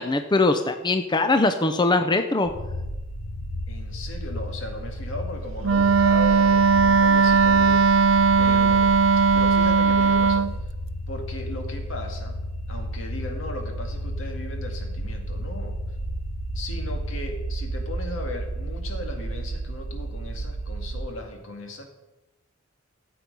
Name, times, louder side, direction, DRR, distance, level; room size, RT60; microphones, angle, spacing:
voice 1, 0.0-2.5, left 2 dB, 20° left, 8 dB, 0.6 m, -21 dB
sound 1, 2.5-21.0, equal, 60° left, 2.2 m, -32 dB
voice 2, 3.7-8.0 8.4-8.9 9.3-10.5 11.1-12.4 12.7-15.8 16.5-21.8, left 1 dB, 80° left, 3 dB, 2.2 m, -37 dB
Wind instrument woodwind instrument, 5.6-10.5, right 5 dB, 80° right, 0.5 m, -18 dB
14.5 x 7.7 x 5.4 m, 1.0 s
head